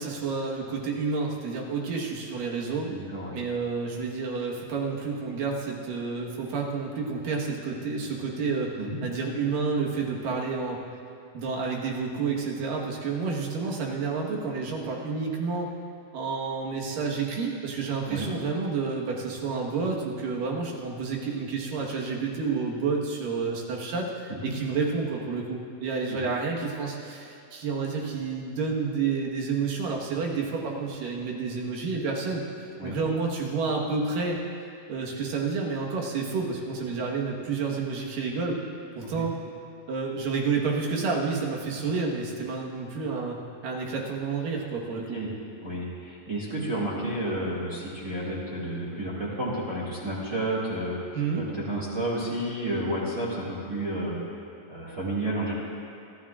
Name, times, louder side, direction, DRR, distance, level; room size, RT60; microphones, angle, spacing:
voice 1, 0.0-2.9 3.3-8.7 9.0-10.8 11.3-15.7 16.1-32.4 32.8-34.4 34.9-38.6 39.0-39.4 39.9-43.4 43.6-45.2 51.1-51.5, right 4 dB, 70° right, -2 dB, 3.0 m, -30 dB
voice 2, 2.9-3.3 8.8-9.0 18.1-18.3 24.4-24.5 26.1-26.2 32.8-33.0 39.0-39.3 45.1-45.3 45.6-51.1 51.3-54.2 54.7-55.5, right 1 dB, 25° right, -7 dB, 1.8 m, -31 dB
24.0 x 14.0 x 2.5 m, 2.6 s
omnidirectional pair, 4.3 m